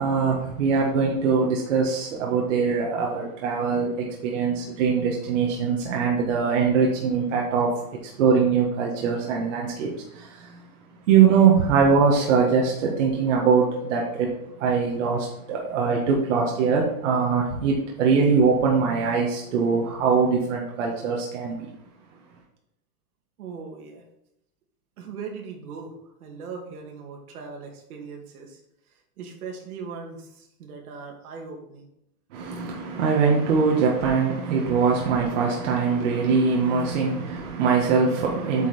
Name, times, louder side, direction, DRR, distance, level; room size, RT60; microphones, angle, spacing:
voice 1, 0.0-10.6 11.1-21.7 32.3-38.7, right 5 dB, 55° right, 1.8 m, -22 dB
voice 2, 23.4-24.0 25.0-25.9 26.2-28.6 29.2-31.9, right 5 dB, 75° right, 2.5 m, -39 dB
8.6 x 5.9 x 4.4 m
supercardioid pair, 170°, 45 cm